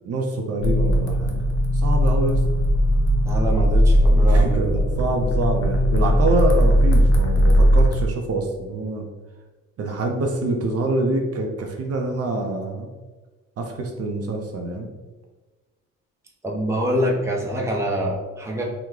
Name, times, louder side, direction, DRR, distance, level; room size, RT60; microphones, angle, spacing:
voice 1, 0.0-1.4 1.7-2.4 4.1-9.1 9.8-12.9 13.6-14.9, right 2 dB, 55° right, 2 dB, 0.6 m, -26 dB
sound 1, 0.6-8.1, equal, 75° left, 0.7 m, -18 dB
voice 2, 3.3-4.8 16.4-18.6, equal, 10° right, -1 dB, 0.6 m, -25 dB
2.9 x 2.2 x 3.6 m, 1.2 s
cardioid pair, 90°, 30 cm